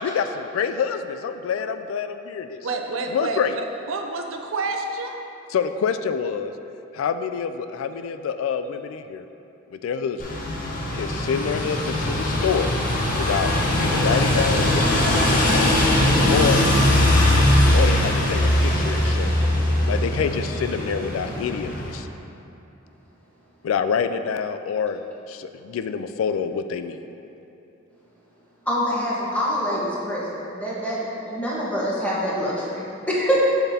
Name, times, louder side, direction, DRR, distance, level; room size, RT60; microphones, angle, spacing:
voice 1, 0.0-2.7 3.1-3.6 5.5-6.5 6.9-9.2 9.7-10.4 10.9-12.7 13.2-15.8 16.3-17.0 17.3-17.5 17.7-19.3 19.9-22.1 23.6-25.0 25.3-27.0, left 6 dB, 90° left, 9 dB, 0.3 m, -27 dB
voice 2, 2.6-3.4 3.9-5.2, right 3 dB, 80° right, 4 dB, 0.5 m, -28 dB
sound 1, 10.2-21.9, left 1 dB, 45° left, 0.9 m, -20 dB
voice 3, 28.7-30.3 30.5-33.4, equal, 5° left, -7 dB, 1.2 m, -25 dB
7.1 x 5.9 x 2.8 m, 2.9 s
head